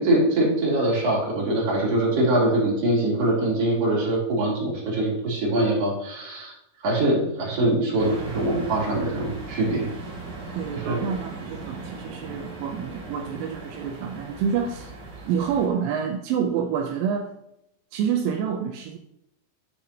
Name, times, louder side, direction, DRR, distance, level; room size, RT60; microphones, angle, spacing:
voice 1, 0.0-6.5 6.8-9.9 10.8-11.1, right 1 dB, 45° right, -5 dB, 3.4 m, -23 dB
sound 1, 8.0-15.7, right 3 dB, 60° right, 3.8 m, -38 dB
voice 2, 10.6-14.9 15.3-17.3 17.9-19.0, right 7 dB, 85° right, 4 dB, 2.2 m, -28 dB
9.7 x 6.9 x 2.8 m, 0.81 s
omnidirectional pair, 4.6 m